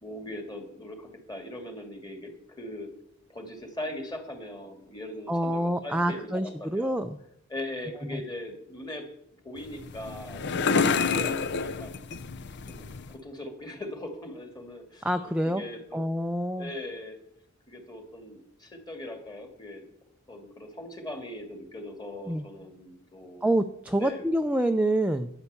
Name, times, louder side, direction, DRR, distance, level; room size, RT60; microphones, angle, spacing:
voice 1, 0.0-2.9 3.3-7.0 7.5-9.1 9.4-12.0 12.7-16.1 16.6-17.2 17.7-19.8 20.3-23.4 24.0-24.3, left 1 dB, 20° left, 4 dB, 2.3 m, -40 dB
voice 2, 5.3-7.2 8.1-8.2 15.0-15.6 15.9-16.7 22.3-22.4 23.4-25.3, right 1 dB, 5° right, 6 dB, 0.5 m, -27 dB
sound 1, 9.6-13.2, left 5 dB, 55° left, 0.6 m, -29 dB
12.0 x 9.8 x 6.9 m, 0.76 s
head